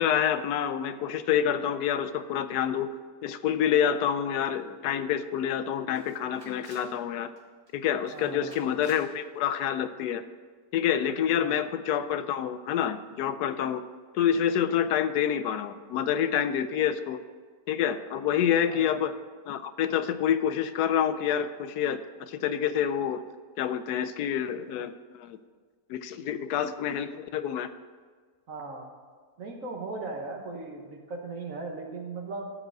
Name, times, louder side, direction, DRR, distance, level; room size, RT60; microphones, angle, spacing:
voice 1, 0.0-2.9 3.2-7.3 7.7-10.2 10.7-13.8 14.1-17.2 17.7-19.1 19.5-23.2 23.6-25.4 25.9-27.7, left 9 dB, 75° left, 12 dB, 1.1 m, -27 dB
Camera, 4.9-5.0 5.3-5.4 5.9-7.0 7.4-7.7 8.0-9.1, right 3 dB, 75° right, 2.1 m, -55 dB
voice 2, 8.1-8.5 11.4-11.5 18.7-18.9 28.5-28.9 29.4-32.5, right 3 dB, 55° right, 0 dB, 1.8 m, -38 dB
14.0 x 4.9 x 7.8 m, 1.5 s
omnidirectional pair, 1.7 m